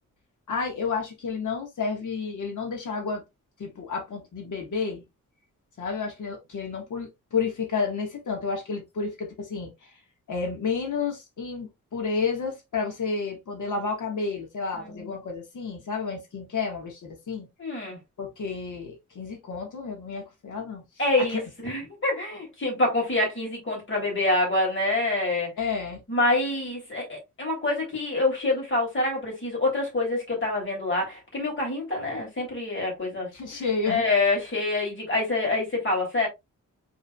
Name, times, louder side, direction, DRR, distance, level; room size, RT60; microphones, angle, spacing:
voice 1, 0.5-3.2 3.6-5.0 5.8-9.9 10.3-17.5 18.2-20.8 21.3-21.4 25.6-26.0 33.3-34.1, left 5 dB, 70° left, 1.5 m, -31 dB
voice 2, 14.8-15.1 17.6-18.0 21.0-25.5 26.1-33.3 33.8-36.3, left 2 dB, 40° left, 2.8 m, -26 dB
5.4 x 3.6 x 2.3 m
wide cardioid pair, 170°, 32 cm